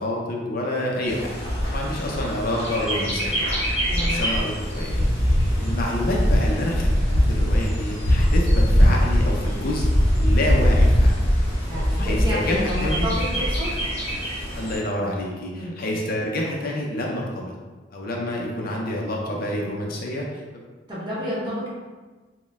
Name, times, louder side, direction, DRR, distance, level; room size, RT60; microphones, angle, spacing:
voice 1, 0.0-1.4 1.7-3.4 4.0-5.1 5.6-9.9 10.1-11.1 11.7-13.1 14.5-17.5 17.9-20.4, left 1 dB, 50° left, -1 dB, 0.5 m, -28 dB
Bird, 1.0-14.8, equal, 35° left, 1.1 m, -21 dB
voice 2, 3.9-4.2 11.7-13.7 15.6-15.8 20.9-21.7, equal, 25° right, -7 dB, 1.2 m, -29 dB
4.1 x 2.2 x 3.5 m, 1.3 s
head